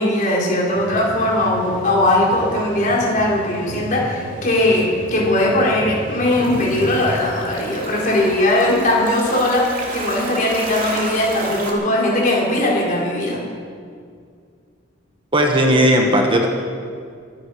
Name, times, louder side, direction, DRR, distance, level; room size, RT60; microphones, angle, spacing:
voice 1, 0.0-13.4, left 1 dB, 45° left, -3 dB, 4.2 m, -19 dB
sound 1, 0.7-7.3, equal, 60° left, 4.8 m, -34 dB
sound 2, 6.3-11.7, right 2 dB, 45° right, 2.5 m, -32 dB
voice 2, 15.3-16.5, equal, 25° right, 2 dB, 1.4 m, -15 dB
23.5 x 10.5 x 5.0 m, 2.2 s
head